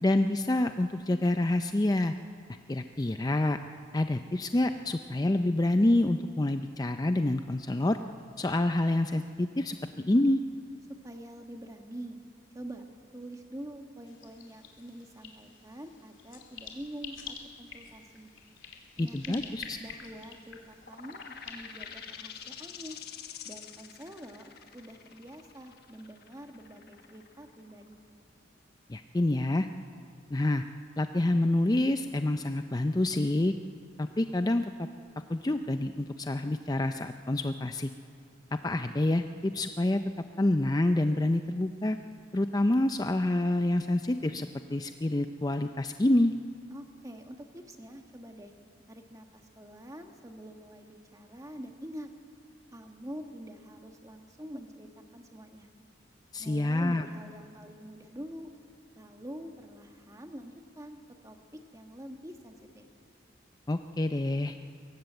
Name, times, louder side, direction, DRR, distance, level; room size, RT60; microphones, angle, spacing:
voice 1, 0.0-2.1 2.7-3.6 3.9-8.0 8.4-9.8 10.0-10.4 19.0-19.6 28.9-29.7 30.3-30.6 31.0-33.5 34.0-34.9 35.3-37.9 38.5-40.0 40.4-42.0 42.3-46.3 56.3-57.0 63.7-64.6, left 1 dB, 20° left, 8 dB, 0.5 m, -27 dB
voice 2, 11.0-12.2 12.5-12.8 13.1-18.3 19.0-23.0 23.4-28.0 46.7-48.5 48.9-52.1 52.7-55.7 56.4-58.5 58.9-62.9, equal, 15° right, 5 dB, 1.5 m, -45 dB
sound 1, 14.1-22.1, left 6 dB, 90° left, 2.7 m, -48 dB
sound 2, 20.8-28.2, left 7 dB, 55° left, 1.4 m, -47 dB
23.0 x 17.5 x 8.0 m, 2.3 s
head